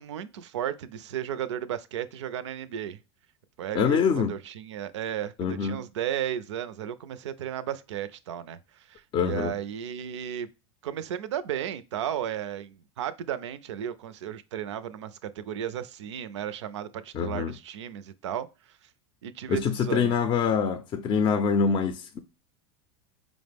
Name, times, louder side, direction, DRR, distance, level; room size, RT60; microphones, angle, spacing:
voice 1, 0.0-3.0 3.6-10.5 10.8-18.9 19.2-20.1, right 10 dB, 90° right, 0.4 m, -34 dB
voice 2, 3.7-4.4 5.4-5.8 9.1-9.5 17.1-17.5 19.5-22.2, left 6 dB, 35° left, 0.4 m, -25 dB
4.8 x 2.0 x 3.3 m
hypercardioid pair, 110°, 15 cm